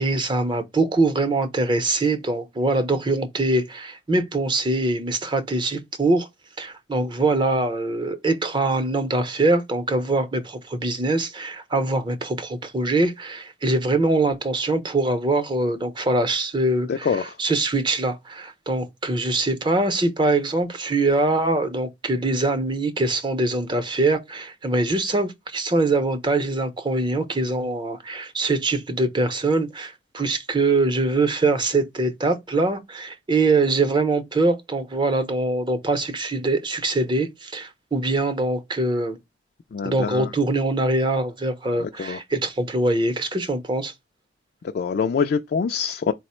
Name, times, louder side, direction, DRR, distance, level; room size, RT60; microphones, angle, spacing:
voice 1, 0.0-6.3 6.6-39.2 39.8-43.9, right 2 dB, 25° right, 0.6 m, -23 dB
voice 2, 16.9-17.2 39.7-40.3 42.0-42.2 44.7-46.1, left 6 dB, 55° left, 0.3 m, -24 dB
4.2 x 2.0 x 4.2 m
head